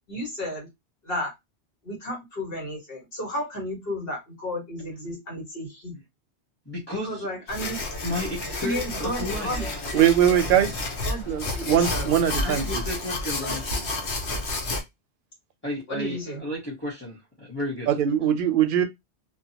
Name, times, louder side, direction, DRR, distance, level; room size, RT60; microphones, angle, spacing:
voice 1, 0.1-0.7 1.0-1.3 1.8-6.0 7.0-8.1 8.6-10.4 11.0-11.2 11.5-12.7 13.4-13.6 15.9-16.4, equal, 55° left, 1.7 m, -33 dB
voice 2, 6.7-7.3 8.0-9.6 12.4-13.8 15.6-17.9, left 1 dB, 10° left, 1.0 m, -33 dB
sound 1, 7.5-14.8, left 2 dB, 75° left, 1.1 m, -30 dB
voice 3, 9.9-10.7 11.3-12.8 17.9-18.8, right 9 dB, 60° right, 0.6 m, -21 dB
2.9 x 2.2 x 2.8 m
omnidirectional pair, 1.2 m